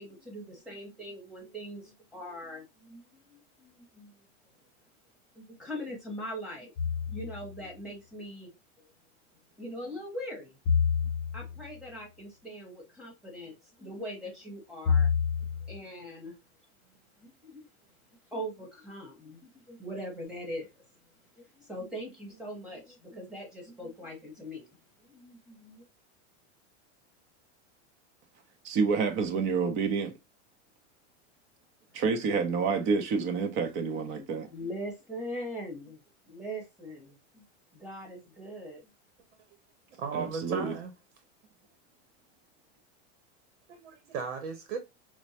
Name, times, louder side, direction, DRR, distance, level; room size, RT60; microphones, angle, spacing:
voice 1, 0.0-4.2 5.3-6.7 7.1-8.5 8.8-8.9 9.6-10.6 11.0-15.1 15.7-16.3 17.2-17.7 18.3-20.8 21.4-25.9 33.6-36.0 36.3-37.4 37.7-38.9, equal, ahead, 1.3 m, -42 dB
sound 1, 6.8-7.6 10.7-11.7 14.9-15.8, left 6 dB, 45° left, 0.7 m, -28 dB
voice 2, 28.6-30.2 31.9-34.5 40.1-40.8, right 5 dB, 35° right, 0.8 m, -28 dB
voice 3, 40.0-40.9 43.7-44.8, right 5 dB, 85° right, 0.9 m, -36 dB
4.4 x 2.1 x 2.8 m
supercardioid pair, 150°, 35 cm